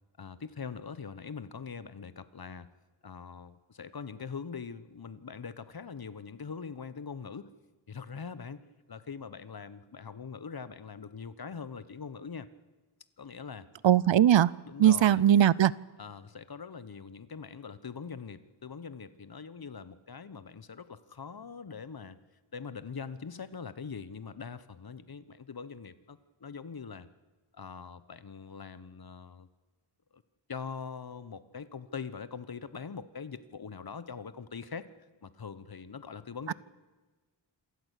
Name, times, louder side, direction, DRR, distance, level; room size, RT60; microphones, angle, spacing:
voice 1, 0.2-2.7 3.0-7.5 7.9-12.5 13.2-13.7 14.6-15.2 16.0-22.2 22.5-27.1 27.5-29.5 30.1-30.2 30.5-34.9 35.2-36.5, left 5 dB, 50° left, 14 dB, 1.1 m, -42 dB
voice 2, 13.8-14.5 14.8-15.7 36.5-36.6, right 11 dB, 70° right, 22 dB, 0.6 m, -20 dB
27.0 x 14.0 x 8.3 m, 1.3 s
wide cardioid pair, 100°, 47 cm